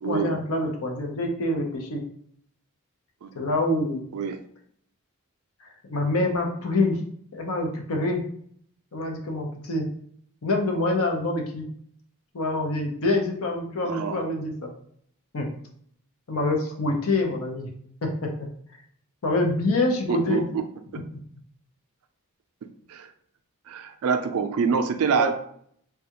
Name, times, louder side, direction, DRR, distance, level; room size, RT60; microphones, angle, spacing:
voice 1, 0.0-2.0 3.3-4.1 5.8-7.0 7.3-8.2 8.9-9.9 10.4-11.7 12.3-14.7 15.3-15.5 16.3-17.7 18.0-18.3 19.2-20.4 21.1-21.2 25.1-25.3, left 2 dB, 65° left, 2 dB, 0.7 m, -26 dB
voice 2, 13.8-14.2 20.1-20.6 22.9-23.1 23.7-25.3, right 6 dB, 70° right, 8 dB, 0.4 m, -25 dB
3.3 x 2.3 x 2.8 m, 0.64 s
head